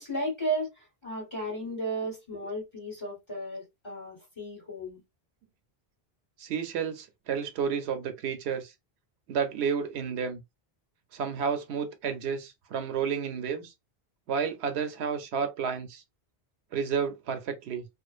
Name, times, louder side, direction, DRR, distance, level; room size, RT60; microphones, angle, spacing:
voice 1, 0.0-5.0, right 1 dB, 30° left, 1.2 m, -34 dB
voice 2, 6.4-8.7 9.3-10.4 11.1-13.7 14.3-16.0 16.7-17.8, right 6 dB, 90° right, 0.8 m, -31 dB
2.5 x 2.1 x 2.3 m
omnidirectional pair, 1.1 m